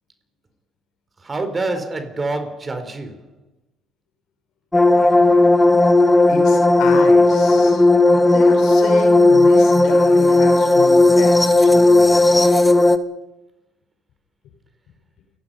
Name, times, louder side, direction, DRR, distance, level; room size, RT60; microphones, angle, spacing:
voice 1, 1.2-3.3, right 2 dB, 30° right, 4.2 m, -26 dB
sound 1, 4.7-13.0, left 2 dB, 15° left, 1.6 m, -14 dB
voice 2, 6.3-7.8 8.1-12.4, left 6 dB, 65° left, 5.3 m, -31 dB
28.5 x 16.5 x 5.6 m
hypercardioid pair, 65°, 0 cm